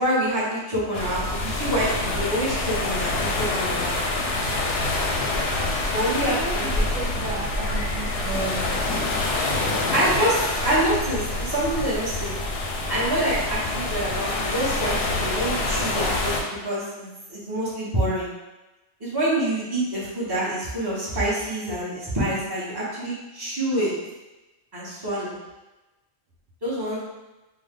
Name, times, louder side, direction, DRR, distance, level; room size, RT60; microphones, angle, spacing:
voice 1, 0.0-4.1 5.9-6.8 9.9-12.4 12.9-16.3 16.6-18.3 19.0-23.9 24.7-25.4 26.6-27.0, right 1 dB, 20° right, -8 dB, 1.0 m, -26 dB
sound 1, 0.9-16.4, left 2 dB, 65° left, 0.8 m, -26 dB
voice 2, 5.9-8.8, right 3 dB, 75° right, -8 dB, 1.1 m, -33 dB
3.4 x 2.2 x 3.6 m, 1.1 s
omnidirectional pair, 1.3 m